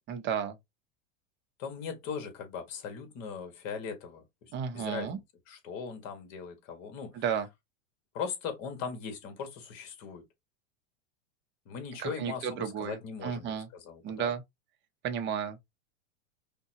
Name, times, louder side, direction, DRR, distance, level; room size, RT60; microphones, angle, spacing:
voice 1, 0.1-0.6 4.5-5.2 7.1-7.5 12.0-13.7 14.0-14.4 15.0-15.6, right 8 dB, 30° right, 0.8 m, -33 dB
voice 2, 1.6-7.2 8.1-10.2 11.6-14.3, left 6 dB, 40° left, 1.6 m, -39 dB
5.5 x 2.3 x 2.8 m
supercardioid pair, 145°, 38 cm